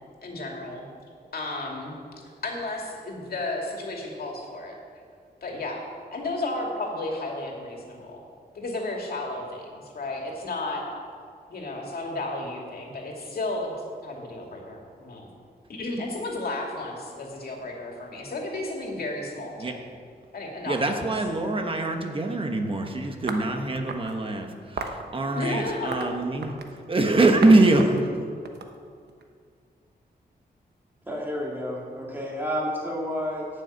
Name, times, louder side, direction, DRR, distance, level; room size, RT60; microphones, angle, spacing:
voice 1, 0.2-0.9 1.3-2.0 2.4-4.8 5.4-5.8 6.1-8.2 8.5-10.8 11.5-13.7 14.0-15.3 15.7-19.8 20.3-21.1 25.3-26.1, left 2 dB, 60° left, 0 dB, 2.4 m, -33 dB
voice 2, 20.7-26.5 26.9-28.1, right 2 dB, 30° right, 4 dB, 1.1 m, -23 dB
sound 1, 23.3-24.2 24.8-25.0 25.7-26.8 27.4-27.5 27.8-29.2, right 4 dB, 70° right, 1.0 m, -35 dB
voice 3, 31.1-33.5, equal, 10° right, -2 dB, 2.2 m, -30 dB
11.5 x 6.6 x 8.8 m, 2.2 s
wide cardioid pair, 160°, 17 cm